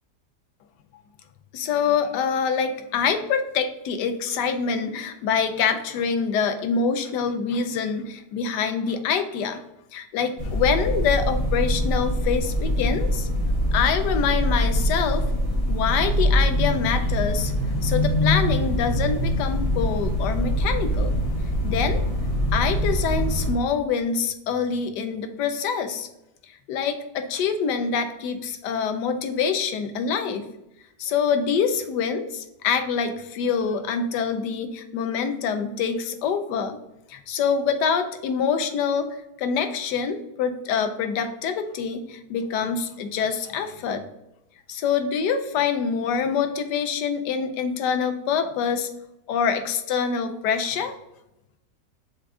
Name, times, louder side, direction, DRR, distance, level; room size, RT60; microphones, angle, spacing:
voice 1, 1.5-9.6 9.9-13.3 13.7-15.2 15.7-17.5 17.8-21.2 21.6-22.0 22.5-26.1 26.7-30.5 31.0-36.8 37.1-39.1 39.4-44.0 44.7-48.9 49.3-50.9, left 6 dB, 85° left, 7 dB, 1.2 m, -25 dB
sound 1, 10.4-23.5, equal, 40° left, 0.5 m, -24 dB
5.8 x 2.5 x 3.5 m, 0.88 s
omnidirectional pair, 1.8 m